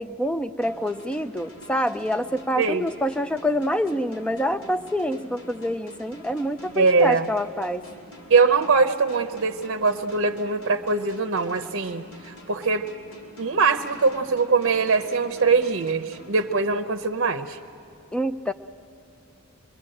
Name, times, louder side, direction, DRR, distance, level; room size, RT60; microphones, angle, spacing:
voice 1, 0.0-7.8 18.1-18.5, equal, 5° left, 8 dB, 0.5 m, -26 dB
sound 1, 0.6-17.2, left 1 dB, 80° left, 4.9 m, -47 dB
voice 2, 6.8-7.3 8.3-12.9 13.4-17.6, right 4 dB, 60° right, 7 dB, 0.7 m, -22 dB
26.5 x 22.5 x 7.8 m, 2.9 s
head